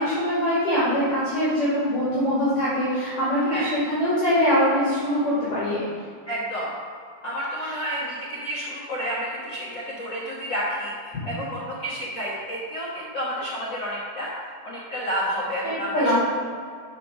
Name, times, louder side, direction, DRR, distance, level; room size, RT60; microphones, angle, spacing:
voice 1, 0.0-5.9 11.1-11.2 15.6-16.1, equal, 50° left, -11 dB, 3.4 m, -23 dB
voice 2, 6.3-6.7 7.2-14.3 14.6-16.1, equal, 80° left, -7 dB, 1.0 m, -30 dB
6.8 x 6.0 x 6.1 m, 2.2 s
omnidirectional pair, 4.2 m